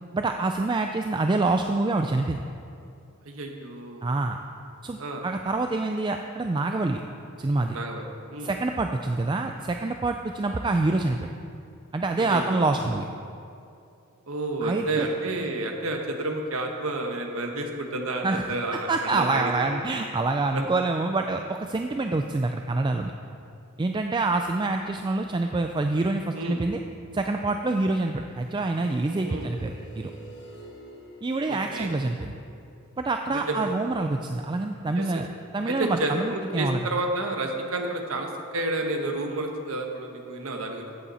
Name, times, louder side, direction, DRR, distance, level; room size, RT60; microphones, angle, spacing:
voice 1, 0.1-2.4 4.0-4.4 4.8-7.0 7.4-7.8 8.4-11.3 11.9-13.0 14.6-15.1 18.2-18.4 18.7-23.1 23.8-26.8 27.1-30.1 31.2-32.4 33.0-35.3 35.5-36.8, right 2 dB, 20° right, 5 dB, 0.3 m, -26 dB
voice 2, 3.2-4.0 5.0-5.2 7.7-8.5 12.2-12.8 14.3-19.5 20.5-20.6 26.3-26.6 29.3-29.5 31.5-31.9 33.3-33.7 35.0-35.2 35.7-40.8, right 2 dB, 75° right, 3 dB, 1.3 m, -30 dB
sound 1, 24.2-26.5 28.3-33.1, right 1 dB, 55° left, 1.8 m, -50 dB
14.0 x 8.4 x 4.2 m, 2.5 s
head